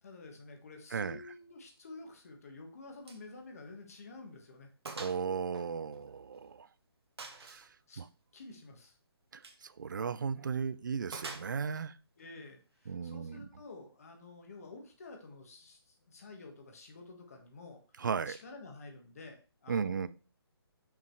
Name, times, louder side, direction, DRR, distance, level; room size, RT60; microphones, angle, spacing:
voice 1, 0.0-4.7 7.9-8.0 8.3-9.0 12.2-20.1, left 3 dB, 35° left, 1.4 m, -50 dB
voice 2, 0.9-1.2 5.0-6.7 7.4-7.7 8.0-8.1 9.3-12.0 12.9-13.5 18.0-18.4 19.7-20.1, right 6 dB, 50° right, 0.4 m, -36 dB
Gunshot gunfire, 3.1-3.3 3.6-3.7 4.2-4.3 4.9-5.2 5.5-6.5 7.2-7.7 9.3-9.6 11.1-11.9, right 3 dB, 80° right, 1.5 m, -45 dB
5.8 x 4.9 x 4.6 m
hypercardioid pair, 175°, 13 cm